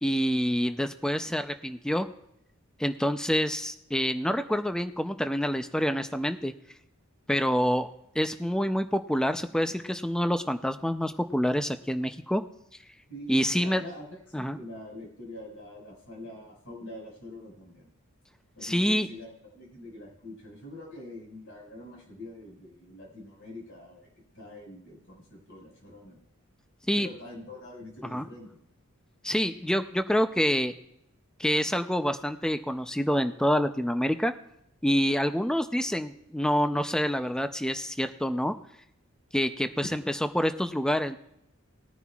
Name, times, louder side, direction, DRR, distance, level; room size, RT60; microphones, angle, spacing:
voice 1, 0.0-2.1 2.8-6.5 7.3-7.9 8.1-12.4 13.3-13.8 14.3-14.6 18.6-19.1 26.9-27.1 28.1-28.2 29.2-30.7 31.4-34.3 34.8-38.5 39.3-41.2, equal, 5° left, 8 dB, 0.5 m, -27 dB
voice 2, 13.1-17.9 18.5-26.2 26.9-28.6, left 1 dB, 60° left, -1 dB, 5.1 m, -45 dB
20.0 x 9.7 x 2.4 m, 0.78 s
head